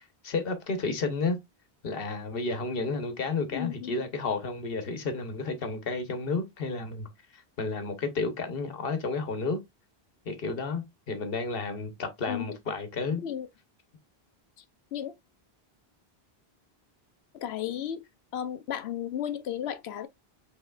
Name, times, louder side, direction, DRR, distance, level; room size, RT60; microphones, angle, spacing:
voice 1, 0.0-1.4 1.8-7.1 7.3-9.6 10.2-13.2, left 3 dB, 65° left, 1.2 m, -31 dB
voice 2, 3.5-4.0 12.3-12.5 13.2-13.5 14.9-15.1 17.3-18.0 18.3-20.1, left 10 dB, 85° left, 0.9 m, -34 dB
5.6 x 3.5 x 2.4 m
omnidirectional pair, 1.0 m